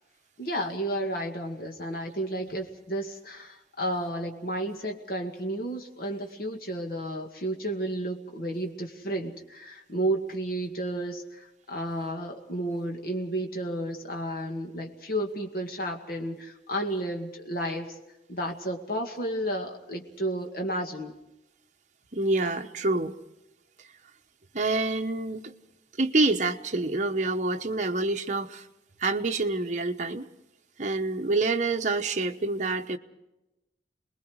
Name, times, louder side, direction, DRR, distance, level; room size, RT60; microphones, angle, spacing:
voice 1, 0.4-18.0 18.3-21.1, right 1 dB, 55° left, 3 dB, 2.2 m, -32 dB
voice 2, 22.1-23.1 24.5-25.5 26.0-28.6 29.0-30.2 30.8-33.0, right 2 dB, 45° right, 5 dB, 1.1 m, -27 dB
28.5 x 21.0 x 4.8 m, 0.95 s
head